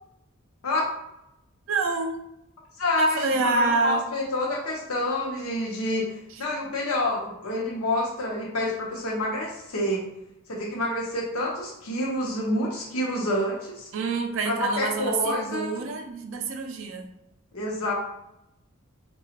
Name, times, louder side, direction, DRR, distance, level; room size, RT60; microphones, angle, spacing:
voice 1, 1.7-2.2 3.0-4.0 13.9-17.1, right 3 dB, 60° right, 5 dB, 0.4 m, -27 dB
voice 2, 2.8-10.0 10.5-13.9 14.5-15.8 17.5-17.9, left 1 dB, 80° left, -2 dB, 0.7 m, -28 dB
2.8 x 2.2 x 2.8 m, 0.85 s
head